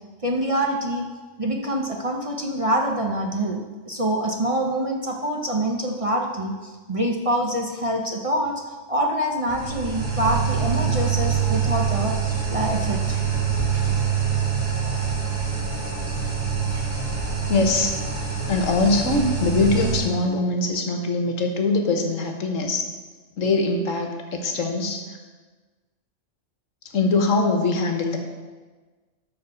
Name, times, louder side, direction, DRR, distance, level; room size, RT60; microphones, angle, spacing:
voice 1, 0.2-1.0 1.4-8.6 8.9-13.2, right 1 dB, 35° right, 1 dB, 0.7 m, -25 dB
sound 1, 9.5-20.0, right 6 dB, 15° right, 3.1 m, -25 dB
voice 2, 17.5-18.0 18.5-22.9 23.4-25.2 26.9-28.2, left 3 dB, 85° left, 4 dB, 1.5 m, -22 dB
12.0 x 4.2 x 6.9 m, 1.3 s
omnidirectional pair, 1.3 m